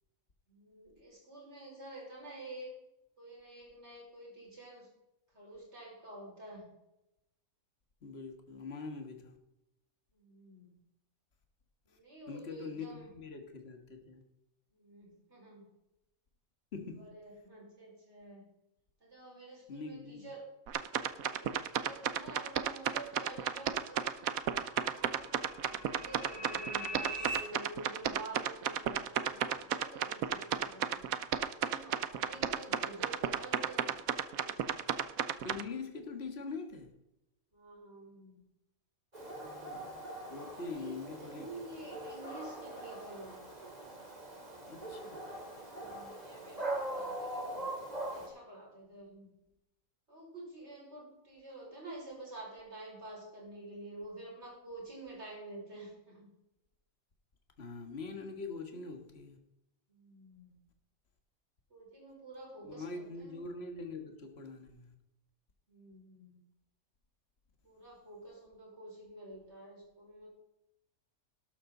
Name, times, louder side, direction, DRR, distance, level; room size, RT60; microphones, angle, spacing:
voice 1, 0.5-2.7 3.2-4.9 5.3-6.6 10.1-10.7 11.8-13.1 14.7-15.7 17.0-18.5 19.0-20.5 21.1-24.3 24.9-25.2 25.7-31.2 31.5-33.9 34.3-35.2 37.5-38.4 40.6-43.5 44.6-44.9 45.6-49.3 50.1-56.3 59.9-60.5 61.7-63.4 65.7-66.4 67.6-70.3, right 2 dB, 50° right, -3 dB, 5.6 m, -49 dB
voice 2, 8.0-9.4 11.9-12.0 12.3-14.2 16.7-17.1 19.7-20.3 32.4-32.5 35.4-36.9 39.4-40.0 40.3-41.5 44.7-45.2 57.6-59.4 62.6-64.9, left 4 dB, 45° left, 5 dB, 1.9 m, -43 dB
sound 1, 20.7-35.6, right 9 dB, 80° right, 1.2 m, -33 dB
sound 2, 23.4-27.4, right 1 dB, 70° left, 4.8 m, -44 dB
Dog, 39.1-48.3, right 1 dB, 30° right, 3.1 m, -42 dB
12.5 x 12.5 x 3.9 m, 0.89 s
omnidirectional pair, 1.5 m